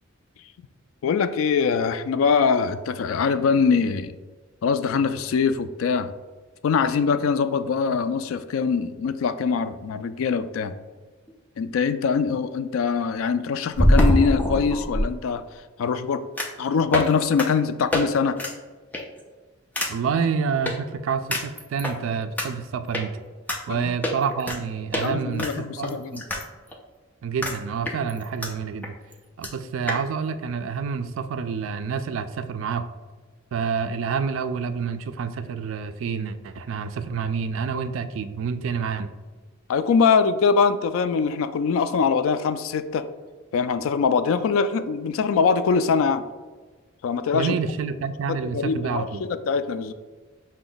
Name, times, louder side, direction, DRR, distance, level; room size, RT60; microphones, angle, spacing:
voice 1, 1.0-4.2 4.6-6.1 6.6-10.8 11.6-15.4 15.8-16.2 16.6-18.4 23.7-23.9 25.0-26.2 39.7-43.0 43.5-46.2 47.0-47.5 48.5-49.9, left 5 dB, 75° left, 11 dB, 0.3 m, -23 dB
sound 1, 11.3-11.4 13.7-15.1 16.4-16.6 16.9-17.1 17.4-17.5 17.9-18.0 18.4-18.5 18.9-19.2 19.8-19.9 20.7-20.8 21.3-21.9 22.4-22.5 22.9-23.0 23.5-23.6 24.0-24.6 24.9-25.1 25.4-26.4 26.7-26.8 27.4-27.6 27.9-28.5 28.8-28.9 29.1-29.2 29.4-29.5 29.9-30.0, equal, 10° left, 0.4 m, -23 dB
voice 2, 19.9-23.1 23.7-26.4 27.2-28.9 29.4-32.9 33.5-39.1 47.3-49.2, right 6 dB, 70° right, 11 dB, 0.3 m, -28 dB
5.9 x 2.2 x 3.9 m, 1.4 s
head